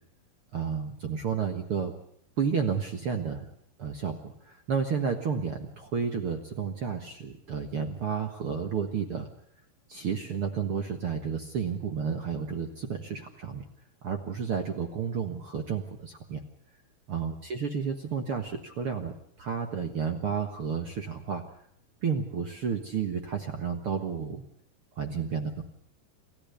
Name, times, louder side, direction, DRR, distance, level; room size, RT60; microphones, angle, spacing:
voice 1, 0.5-1.9 2.4-3.5 3.8-9.3 9.9-13.6 14.0-16.4 17.1-21.4 22.0-24.4 24.9-25.6, right 6 dB, 55° right, 5 dB, 1.6 m, -31 dB
28.0 x 14.0 x 6.9 m, 0.69 s
omnidirectional pair, 4.5 m